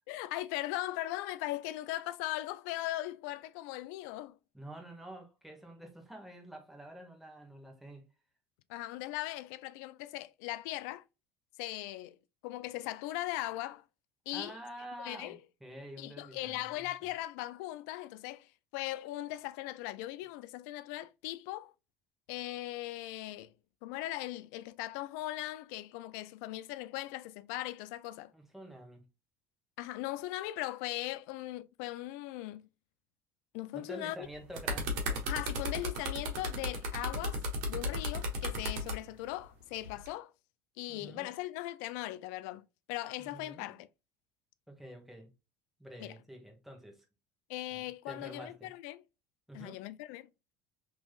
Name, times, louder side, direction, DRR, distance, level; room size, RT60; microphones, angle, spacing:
voice 1, 0.1-4.4 8.7-11.0 11.6-12.2 12.4-13.8 14.3-14.5 15.0-15.4 16.0-21.7 22.3-23.5 23.8-28.3 29.8-32.7 33.5-34.2 35.3-37.4 37.7-40.3 40.8-43.9 46.0-46.2 47.5-49.0 49.5-50.3, left 16 dB, 75° left, 0.3 m, -39 dB
voice 2, 4.5-8.1 14.3-16.9 28.3-29.0 33.7-35.2 40.9-41.3 43.2-43.8 44.7-45.3 45.8-47.0 47.7-48.7 49.5-49.8, right 1 dB, ahead, 1.2 m, -48 dB
sound 1, 34.3-39.0 39.8-40.1, right 1 dB, 75° right, 1.3 m, -35 dB
3.4 x 3.1 x 2.3 m
supercardioid pair, 95°, 9 cm